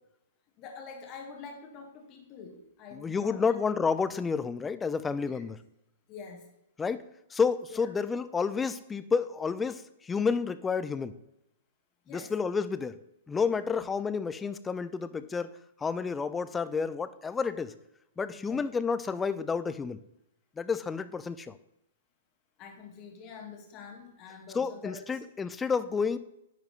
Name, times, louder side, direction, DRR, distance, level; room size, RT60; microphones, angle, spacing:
voice 1, 0.6-3.6 5.2-5.4 6.1-6.5 7.7-7.9 12.1-12.3 13.7-13.9 18.3-18.6 22.6-25.2, left 5 dB, 35° left, 3 dB, 1.7 m, -46 dB
voice 2, 2.9-5.6 6.8-11.1 12.1-13.0 13.3-15.5 15.8-17.7 18.2-20.0 20.6-21.6 24.5-26.2, left 5 dB, 15° left, 14 dB, 0.4 m, -30 dB
10.0 x 4.8 x 3.4 m, 0.86 s
hypercardioid pair, 120°, 0 cm